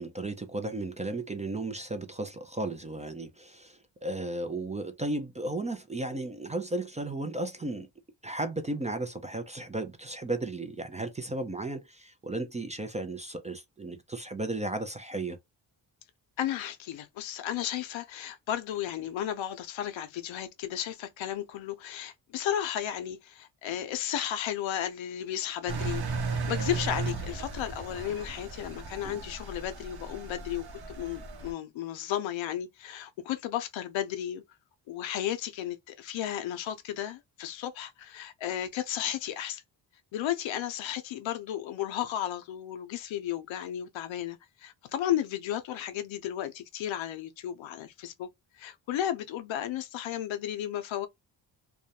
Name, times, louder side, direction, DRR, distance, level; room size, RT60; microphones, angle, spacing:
voice 1, 0.0-7.9 8.2-15.4 29.0-29.2, right 2 dB, 15° right, 0.3 m, -34 dB
voice 2, 16.4-34.4 34.9-39.6 40.1-48.3 48.6-51.1, left 11 dB, 80° left, 0.6 m, -34 dB
Engine, 25.7-31.5, right 4 dB, 55° right, 0.8 m, -35 dB
2.3 x 2.1 x 2.7 m
cardioid pair, 75°, 46 cm